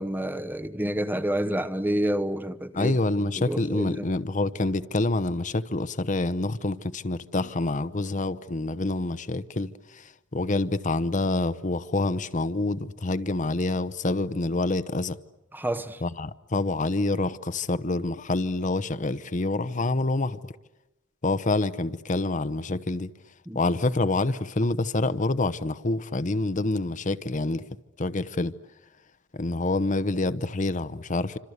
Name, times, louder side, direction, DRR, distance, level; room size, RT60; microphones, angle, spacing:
voice 1, 0.0-2.9 3.5-4.1 15.5-16.0 23.5-23.6, right 1 dB, 10° right, 0.9 m, -28 dB
voice 2, 2.7-15.2 16.0-20.5 21.2-23.1 23.5-27.6 28.0-28.5 29.3-31.4, left 2 dB, 40° left, 0.9 m, -27 dB
27.5 x 26.0 x 8.1 m
head